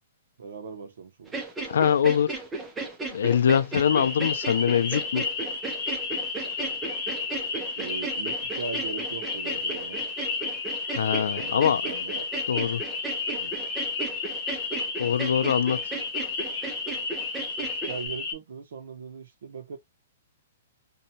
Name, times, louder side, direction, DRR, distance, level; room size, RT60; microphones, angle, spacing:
voice 1, 0.4-1.4 7.8-10.0 11.3-12.3 13.4-13.6 17.6-19.8, right 5 dB, 70° right, 0.8 m, -39 dB
sound 1, 1.3-18.1, right 3 dB, 10° right, 0.5 m, -35 dB
voice 2, 1.7-2.4 3.1-5.2 10.9-12.0 12.5-12.8 15.0-15.8, left 8 dB, 80° left, 0.4 m, -23 dB
sound 2, 3.8-18.3, left 4 dB, 20° left, 0.8 m, -32 dB
2.7 x 2.2 x 2.7 m
hypercardioid pair, 170°, 0 cm